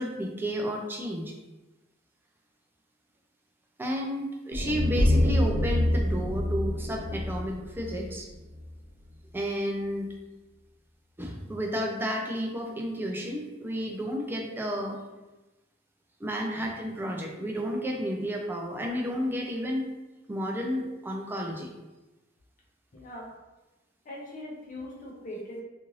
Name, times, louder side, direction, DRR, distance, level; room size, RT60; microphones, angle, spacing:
voice 1, 0.0-1.3 3.8-8.3 9.3-10.1 11.2-15.0 16.2-19.9 20.3-21.7, equal, 10° right, 0 dB, 0.4 m, -32 dB
sound 1, 4.5-8.7, left 1 dB, 70° right, 0.6 m, -26 dB
voice 2, 22.9-23.3 24.0-25.6, left 1 dB, 45° left, -3 dB, 0.7 m, -40 dB
2.6 x 2.5 x 3.1 m, 1.1 s
head